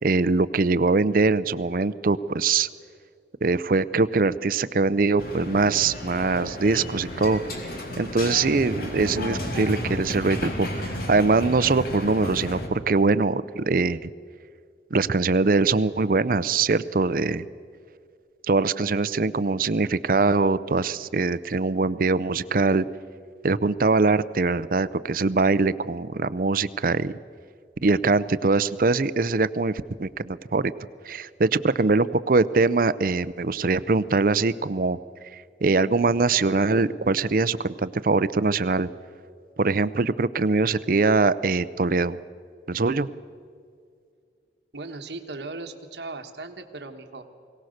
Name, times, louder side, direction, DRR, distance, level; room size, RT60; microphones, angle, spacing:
voice 1, 0.0-2.7 3.4-7.4 8.0-14.1 14.9-17.5 18.5-22.9 23.4-27.1 27.8-30.7 31.0-35.0 35.3-38.9 39.6-42.2 42.7-43.1, right 3 dB, 50° right, 15 dB, 0.6 m, -22 dB
sound 1, 5.2-12.7, left 1 dB, 55° left, 2.9 m, -32 dB
voice 2, 44.7-47.2, right 3 dB, 75° right, 6 dB, 1.3 m, -37 dB
22.5 x 17.5 x 6.5 m, 2.3 s
head